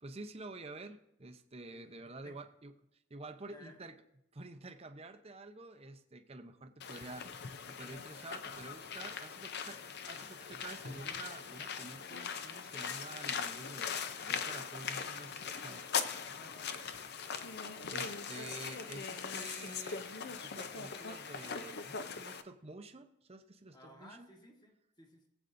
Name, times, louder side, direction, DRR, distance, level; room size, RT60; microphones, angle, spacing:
voice 1, 0.0-4.0 4.3-9.8 10.1-15.9 17.9-24.3, right 2 dB, 30° right, 6 dB, 0.7 m, -49 dB
voice 2, 1.7-2.4 3.5-3.8 9.6-9.9 16.2-16.9 23.7-25.3, left 1 dB, 20° left, 1 dB, 1.5 m, -58 dB
sound 1, 6.8-22.4, left 6 dB, 50° left, 0.6 m, -41 dB
20.0 x 8.1 x 2.6 m, 0.84 s
head